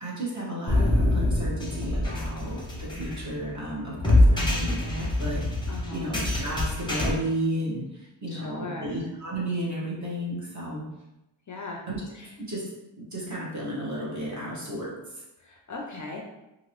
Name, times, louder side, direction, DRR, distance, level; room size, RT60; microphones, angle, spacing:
voice 1, 0.0-5.4 5.9-7.8 8.2-10.8 11.9-12.0 12.4-12.7 13.0-14.9, right 1 dB, 40° right, -5 dB, 1.1 m, -33 dB
sound 1, 0.7-7.1, left 1 dB, 10° left, 0.7 m, -25 dB
voice 2, 5.7-6.1 8.3-8.9 11.5-11.8 12.1-12.3 15.4-16.2, left 3 dB, 45° left, 0 dB, 0.5 m, -38 dB
2.9 x 2.5 x 2.9 m, 0.95 s
wide cardioid pair, 100°, 45 cm